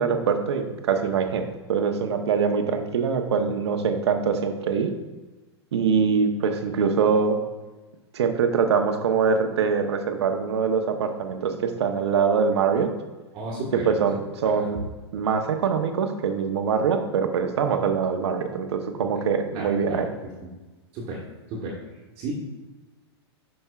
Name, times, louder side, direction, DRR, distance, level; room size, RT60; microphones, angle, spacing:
voice 1, 0.0-4.9 5.7-7.4 8.1-12.9 13.9-14.8 15.1-20.1, right 6 dB, 75° right, 6 dB, 0.9 m, -23 dB
voice 2, 13.3-13.9 14.4-14.7 19.5-20.3 20.9-21.2 21.5-21.8 22.2-22.3, right 2 dB, 40° right, -4 dB, 1.5 m, -33 dB
11.5 x 5.3 x 2.4 m, 1.2 s
hypercardioid pair, 120°, 14 cm